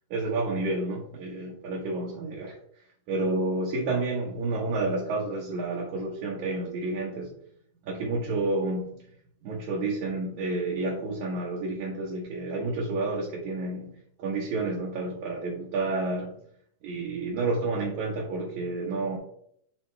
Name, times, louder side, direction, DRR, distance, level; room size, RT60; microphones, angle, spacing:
voice 1, 0.1-2.5 3.1-7.3 7.9-8.9 9.4-13.9 14.2-16.3 16.8-19.2, right 2 dB, 70° right, -3 dB, 2.3 m, -30 dB
7.8 x 4.4 x 3.3 m, 0.67 s
omnidirectional pair, 3.9 m